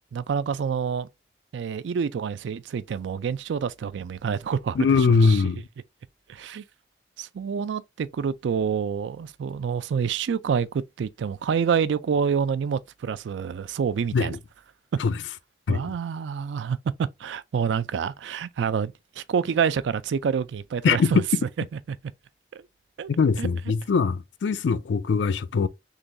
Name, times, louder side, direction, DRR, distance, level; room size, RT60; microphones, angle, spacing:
voice 1, 0.1-1.1 1.5-5.4 6.3-6.6 7.2-14.4 15.7-21.2 22.5-22.6 23.0-23.1 23.4-23.5, right 6 dB, 85° right, 0.3 m, -27 dB
voice 2, 4.8-5.6 14.1-14.4 15.0-15.1 15.7-15.9 20.8-21.1 23.2-25.7, left 5 dB, 85° left, 0.4 m, -22 dB
3.8 x 3.0 x 2.6 m
head